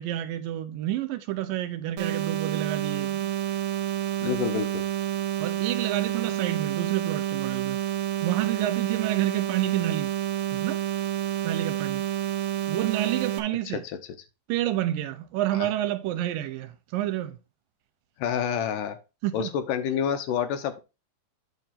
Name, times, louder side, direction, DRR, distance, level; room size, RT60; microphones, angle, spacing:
voice 1, 0.0-3.3 4.2-4.3 5.4-7.8 8.2-10.1 10.5-10.8 11.4-12.0 12.7-13.8 14.5-17.4 19.2-19.5, right 13 dB, 80° right, 2.2 m, -29 dB
sound 1, 2.0-13.4, right 12 dB, 60° right, 1.8 m, -29 dB
voice 2, 4.2-4.8 13.7-13.8 15.5-15.7 18.2-19.0 19.3-20.8, left 8 dB, 75° left, 2.1 m, -28 dB
9.2 x 3.5 x 5.7 m
omnidirectional pair, 4.2 m